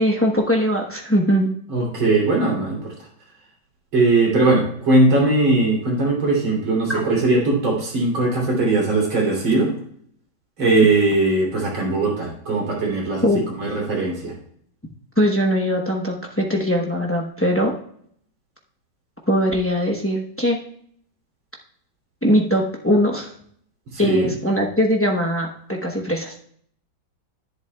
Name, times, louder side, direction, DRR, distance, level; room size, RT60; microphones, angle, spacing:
voice 1, 0.0-1.5 6.9-7.0 13.2-13.4 15.2-17.8 19.3-20.6 22.2-23.3 24.0-26.3, equal, 20° left, 0 dB, 0.4 m, -20 dB
voice 2, 1.7-2.9 3.9-9.7 10.6-13.3 13.6-14.3 24.0-24.3, right 2 dB, 90° right, -2 dB, 3.9 m, -19 dB
11.0 x 10.5 x 2.3 m, 0.64 s
omnidirectional pair, 2.1 m